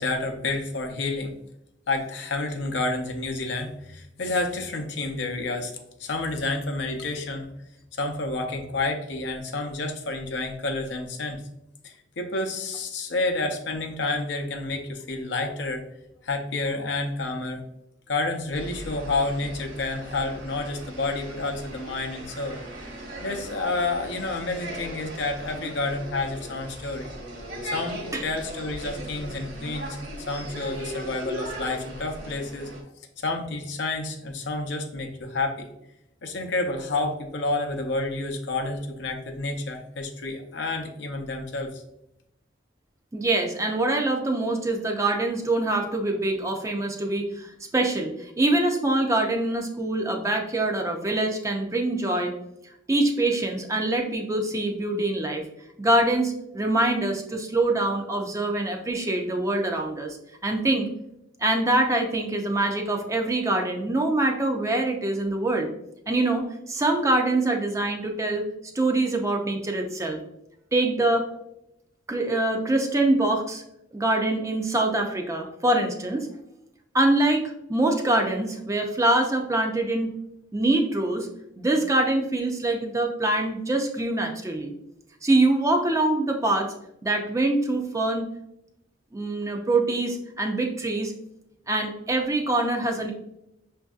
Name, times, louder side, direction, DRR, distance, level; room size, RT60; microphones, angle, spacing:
voice 1, 0.0-1.3 1.9-5.7 6.0-7.5 8.0-11.4 11.8-15.8 16.2-17.6 18.1-22.6 23.2-27.1 27.6-30.0 30.3-32.7 33.2-35.7 36.2-41.8, left 2 dB, 70° left, 3 dB, 0.6 m, -29 dB
sound 1, 18.5-32.8, equal, 55° right, 1.1 m, -38 dB
voice 2, 43.1-52.3 52.9-55.4 55.8-60.2 60.4-60.9 61.4-65.7 66.1-68.5 68.7-70.2 70.7-71.2 72.1-73.6 73.9-76.3 76.9-80.1 80.5-81.3 81.6-84.7 85.2-86.7 87.0-88.3 89.1-91.1 91.7-93.1, right 2 dB, 15° right, 3 dB, 0.4 m, -24 dB
6.1 x 2.6 x 2.3 m, 0.81 s
head